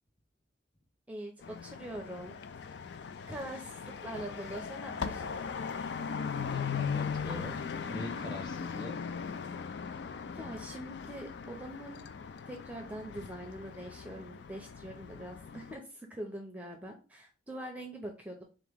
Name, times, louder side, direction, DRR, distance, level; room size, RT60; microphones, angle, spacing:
voice 1, 1.1-2.4 3.3-5.3 10.3-12.0 12.5-18.4, right 1 dB, 10° right, 2 dB, 0.6 m, -43 dB
sound 1, 1.4-15.8, left 6 dB, 65° left, 0.4 m, -39 dB
voice 2, 6.5-9.0, left 1 dB, 25° left, 3 dB, 1.1 m, -43 dB
4.0 x 2.9 x 3.5 m, 0.35 s
head